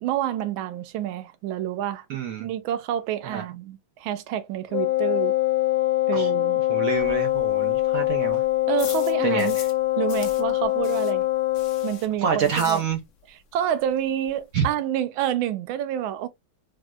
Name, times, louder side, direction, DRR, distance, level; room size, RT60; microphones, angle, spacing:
voice 1, 0.0-2.1 2.4-5.4 6.1-6.6 8.7-9.6 10.0-11.3 11.8-12.8 13.3-16.3, right 11 dB, 90° right, 1.4 m, -28 dB
voice 2, 2.1-2.5 3.2-3.4 6.1-6.3 6.7-8.4 9.2-9.6 12.2-13.0 14.5-14.7, right 7 dB, 70° right, 0.8 m, -26 dB
Wind instrument woodwind instrument, 4.7-12.0, left 17 dB, 90° left, 1.4 m, -23 dB
sound 1, 6.9-9.8 10.1-13.3 13.5-13.6 14.0-14.1 14.2-14.7, left 7 dB, 70° left, 0.7 m, -42 dB
4.5 x 2.1 x 2.2 m
omnidirectional pair, 2.1 m